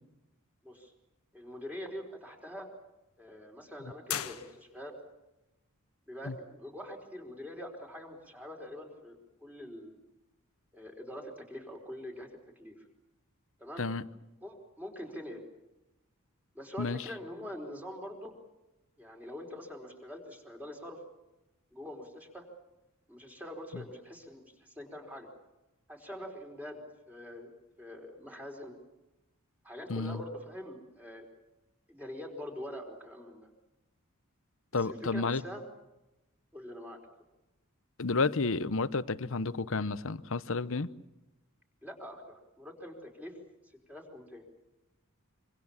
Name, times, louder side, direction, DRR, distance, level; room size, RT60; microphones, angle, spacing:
voice 1, 1.3-2.7 3.2-4.9 6.1-10.0 10.7-12.9 13.6-13.8 14.4-15.4 16.5-18.3 19.0-21.0 21.7-22.5 23.1-25.3 25.9-27.5 27.8-28.7 29.6-31.2 31.9-33.5 34.7-35.6 36.5-37.0 41.8-43.3 43.9-44.4, left 1 dB, 5° right, 4.5 m, -44 dB
sound 1, 4.1-5.1, left 10 dB, 80° left, 1.6 m, -38 dB
voice 2, 34.7-35.4 38.0-40.9, left 3 dB, 60° left, 0.9 m, -31 dB
26.5 x 25.0 x 7.4 m
head